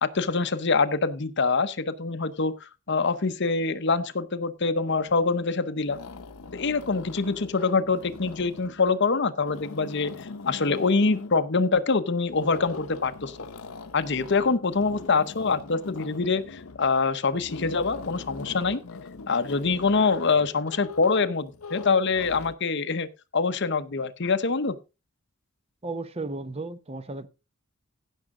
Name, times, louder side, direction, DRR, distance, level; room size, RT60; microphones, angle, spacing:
voice 1, 0.0-6.0 6.5-13.4 13.9-18.8 19.3-24.8, left 4 dB, 55° left, 0.9 m, -25 dB
sound 1, 5.1-5.5 5.8-8.8 9.3-11.4 12.3-22.6, left 4 dB, 85° left, 0.8 m, -41 dB
voice 2, 25.8-27.3, right 3 dB, 30° right, 0.8 m, -34 dB
16.0 x 6.4 x 3.8 m
head